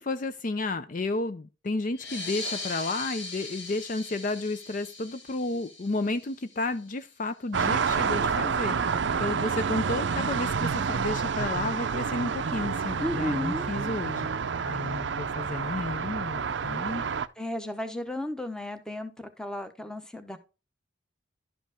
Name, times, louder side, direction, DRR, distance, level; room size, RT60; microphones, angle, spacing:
voice 1, 0.0-14.3 14.6-17.0, left 2 dB, 40° left, 0.5 m, -32 dB
sound 1, 1.9-7.0, left 3 dB, 65° left, 1.9 m, -40 dB
sound 2, 7.5-17.3, right 6 dB, 65° right, 0.5 m, -29 dB
sound 3, 9.7-17.4, left 2 dB, 85° left, 3.9 m, -61 dB
voice 2, 13.0-13.7 17.4-20.4, left 1 dB, 5° left, 0.9 m, -34 dB
11.5 x 5.1 x 3.5 m
head